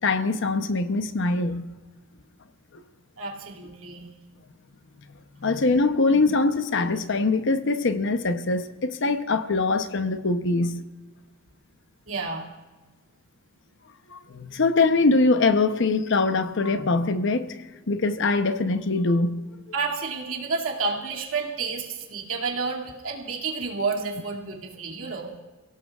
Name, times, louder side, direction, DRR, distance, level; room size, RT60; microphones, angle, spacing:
voice 1, 0.0-1.7 5.4-10.8 14.1-17.5 17.9-19.4, left 3 dB, 60° left, 0.8 m, -23 dB
voice 2, 3.2-4.1 12.1-12.5 19.7-25.3, right 4 dB, 85° right, 2.5 m, -30 dB
29.5 x 17.0 x 2.4 m
head